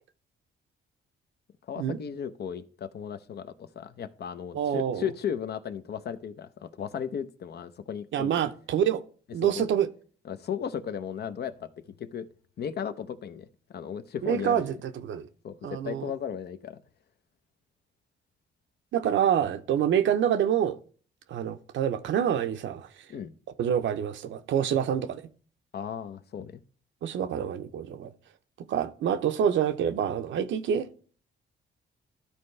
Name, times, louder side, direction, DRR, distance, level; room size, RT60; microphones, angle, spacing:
voice 1, 1.7-8.3 9.4-9.7 10.2-11.7 12.0-12.3 12.6-14.6 15.4-16.8 23.1-23.3 25.7-26.6, left 8 dB, 55° left, 0.7 m, -35 dB
voice 2, 4.5-5.1 8.1-9.0 9.3-9.9 14.2-15.3 15.6-16.1 18.9-20.8 21.3-22.9 23.6-25.2 27.0-28.1 28.6-30.9, right 9 dB, 70° right, 0.7 m, -27 dB
13.0 x 4.3 x 3.2 m
cardioid pair, 90°, 20 cm